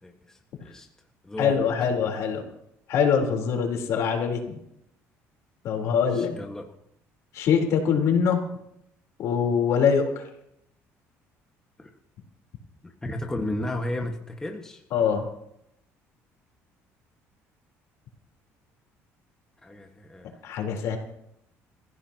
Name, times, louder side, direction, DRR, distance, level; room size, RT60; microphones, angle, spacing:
voice 1, 0.0-0.9 1.2-1.6 5.9-6.7 11.8-11.9 12.8-14.8 19.6-20.4, left 1 dB, 10° left, 2 dB, 1.5 m, -34 dB
voice 2, 1.4-2.5 2.9-4.6 5.6-6.4 7.3-8.5 9.2-10.3 14.9-15.3 20.4-21.0, left 6 dB, 65° left, 2 dB, 3.7 m, -23 dB
26.0 x 15.5 x 2.9 m, 0.77 s
cardioid pair, 125°, 5 cm